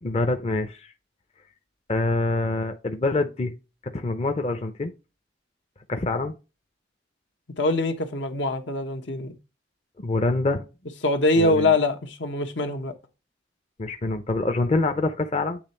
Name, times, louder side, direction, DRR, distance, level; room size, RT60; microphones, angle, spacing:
voice 1, 0.0-0.9 1.9-3.5 3.9-4.9 5.9-6.3 10.0-10.6 11.4-11.7 13.8-15.6, left 2 dB, 35° left, 0.5 m, -25 dB
voice 2, 7.6-9.4 11.0-12.9, left 2 dB, 80° left, 1.1 m, -23 dB
8.8 x 3.2 x 4.2 m
head